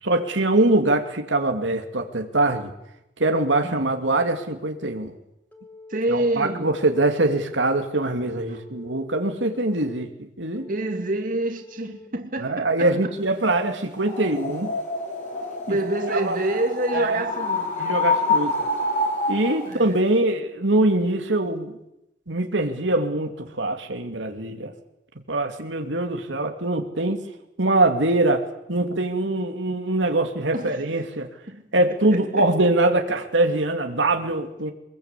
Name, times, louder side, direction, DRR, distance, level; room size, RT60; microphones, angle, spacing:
voice 1, 0.0-2.7 3.2-5.2 6.1-10.7 12.4-14.7 15.7-15.8 16.1-16.4 16.9-17.2 17.8-18.7 19.3-21.7 22.3-24.7 25.3-27.2 27.6-31.3 31.7-34.7, right 2 dB, 85° right, 2.6 m, -23 dB
Telephone, 5.5-6.0 6.5-7.0 7.5-8.0 8.5-9.1 9.5-10.1 10.6-11.1 11.6-12.1 12.6-13.1, left 3 dB, 10° left, 4.8 m, -46 dB
voice 2, 5.9-6.7 8.5-8.6 10.7-13.1 15.7-17.7 19.6-20.0 30.5-30.8 31.5-31.6 32.1-32.5, right 1 dB, 50° right, 2.5 m, -27 dB
sound 1, 13.9-19.7, left 2 dB, 45° left, 5.7 m, -27 dB
24.0 x 21.5 x 8.4 m
head